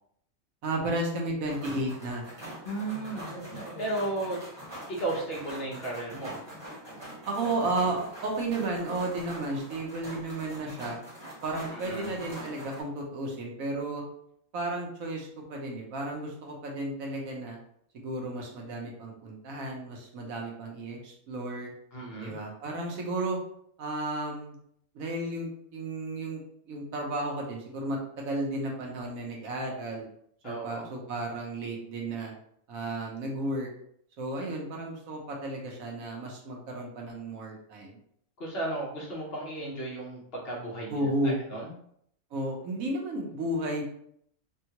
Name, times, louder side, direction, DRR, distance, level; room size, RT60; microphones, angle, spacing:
voice 1, 0.6-2.2 7.3-11.0 11.4-14.0 14.5-17.6 17.9-21.7 22.2-23.4 23.8-24.6 24.9-26.4 26.7-30.1 30.4-32.3 32.7-33.7 34.2-38.0 40.9-41.4 42.3-43.8, right 2 dB, 85° right, 0 dB, 1.2 m, -33 dB
sound 1, 1.4-12.8, right 1 dB, 20° right, 1.1 m, -43 dB
voice 2, 2.6-4.4 4.9-6.3 11.7-12.1 21.9-22.4 30.4-30.8 38.4-41.7, right 2 dB, 50° left, -3 dB, 1.0 m, -35 dB
3.5 x 2.3 x 2.8 m, 0.70 s
omnidirectional pair, 1.4 m